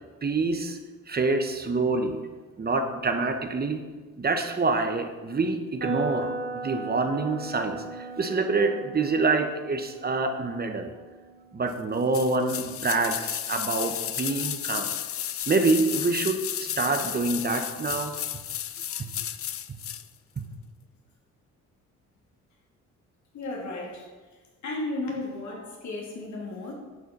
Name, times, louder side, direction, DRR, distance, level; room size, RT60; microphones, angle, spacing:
voice 1, 0.2-0.8 1.1-2.2 2.6-3.8 4.2-10.9 11.5-14.9 15.5-18.2 19.0-19.1 20.4-20.5, right 3 dB, 30° right, 6 dB, 1.1 m, -26 dB
sound 1, 5.8-13.7, right 2 dB, 50° right, 3.8 m, -38 dB
sound 2, 12.1-20.1 20.4-20.5, left 11 dB, 50° left, 0.5 m, -33 dB
voice 2, 23.3-24.1 24.6-26.7, left 2 dB, 70° left, -2 dB, 3.0 m, -34 dB
11.0 x 6.4 x 5.5 m, 1.3 s
cardioid pair, 90°, 30 cm